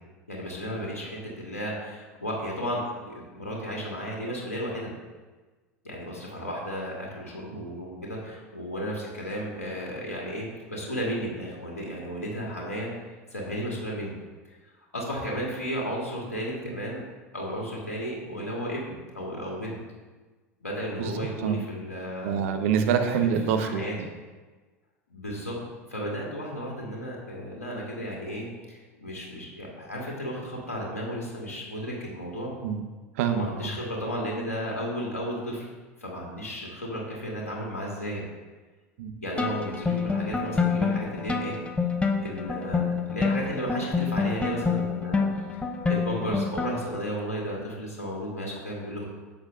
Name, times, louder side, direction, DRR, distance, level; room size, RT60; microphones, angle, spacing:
voice 1, 0.3-4.9 5.8-12.9 13.3-14.1 14.4-17.0 17.3-19.8 20.6-22.4 23.2-23.3 23.6-23.9 25.1-25.6 25.9-32.5 33.3-35.7 36.0-38.2 39.2-41.6 42.2-45.2 45.5-49.0, equal, 85° left, -3 dB, 2.1 m, -34 dB
voice 2, 22.2-23.8 32.6-32.8 33.1-33.8 39.0-39.1, right 7 dB, 60° right, 6 dB, 1.0 m, -26 dB
sound 1, 39.4-47.0, left 5 dB, 15° left, 0.8 m, -27 dB
10.5 x 7.4 x 2.6 m, 1.3 s
figure-of-eight pair, 80°, 8 cm